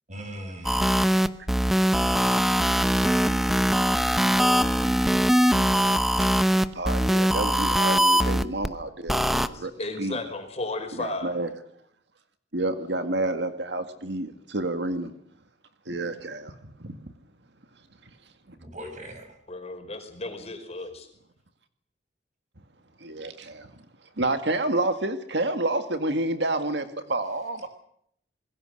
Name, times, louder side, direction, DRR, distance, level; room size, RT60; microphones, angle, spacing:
voice 1, 0.1-0.9 18.5-19.3, equal, 45° right, 6.3 m, -39 dB
sound 1, 0.6-8.7 9.1-9.5, equal, ahead, 0.9 m, -22 dB
voice 2, 6.5-9.7 10.0-10.2 11.0-11.5 12.5-15.1 15.9-16.5 16.8-17.0 23.0-23.7 24.2-27.7, right 2 dB, 70° right, 2.0 m, -29 dB
voice 3, 9.4-11.4 19.5-21.1, left 2 dB, 35° left, 5.1 m, -34 dB
26.5 x 21.5 x 6.6 m
head